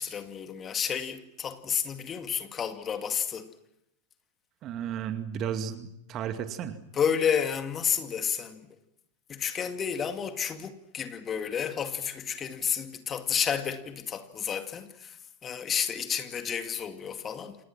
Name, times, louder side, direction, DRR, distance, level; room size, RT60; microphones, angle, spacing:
voice 1, 0.0-3.5 6.9-8.7 9.3-15.2 15.4-17.6, left 7 dB, 25° left, 2.3 m, -31 dB
voice 2, 4.6-6.8, right 8 dB, 35° right, 2.4 m, -34 dB
30.0 x 27.5 x 6.1 m
figure-of-eight pair, 90°, 0 cm